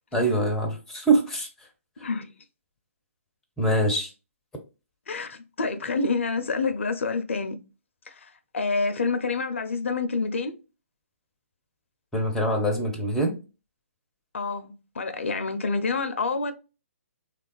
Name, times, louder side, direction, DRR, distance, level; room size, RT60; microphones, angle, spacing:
voice 1, 0.1-1.5 3.6-4.1 12.1-13.4, right 2 dB, 5° left, 0.5 m, -24 dB
voice 2, 5.1-7.6 8.1-10.5 14.3-16.5, left 4 dB, 60° left, 0.4 m, -28 dB
3.3 x 2.3 x 2.2 m
figure-of-eight pair, 130°, 8 cm